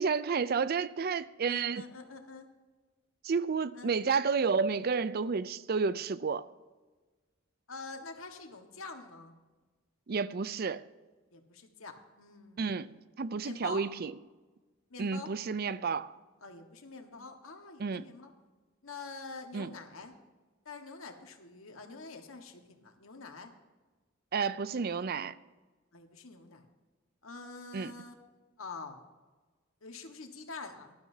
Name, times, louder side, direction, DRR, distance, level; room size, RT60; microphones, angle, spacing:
voice 1, 0.0-1.9 3.2-6.4 10.1-10.9 12.6-14.1 15.0-16.1 17.8-18.0 19.5-19.7 24.3-25.3 27.7-27.9, right 5 dB, 50° right, 0.4 m, -31 dB
voice 2, 1.5-2.5 3.7-3.9 7.7-9.3 11.3-12.9 13.4-13.8 14.9-15.3 16.4-18.3 18.8-20.1 20.6-23.5 25.9-26.6 27.2-28.1 28.6-29.1 29.8-30.9, left 4 dB, 85° left, 1.6 m, -46 dB
18.5 x 12.0 x 2.8 m
head